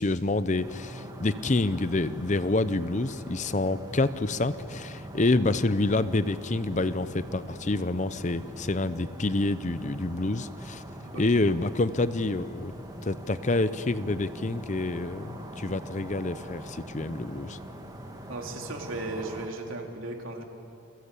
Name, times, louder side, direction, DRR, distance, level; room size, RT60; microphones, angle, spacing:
voice 1, 0.0-10.8 11.1-12.7 13.0-17.6, left 2 dB, 35° left, 14 dB, 0.6 m, -27 dB
sound 1, 0.6-19.5, right 1 dB, 20° right, 2.6 m, -42 dB
voice 2, 18.3-20.4, right 2 dB, 70° right, 2 dB, 3.3 m, -36 dB
29.0 x 22.0 x 8.4 m, 3.0 s
head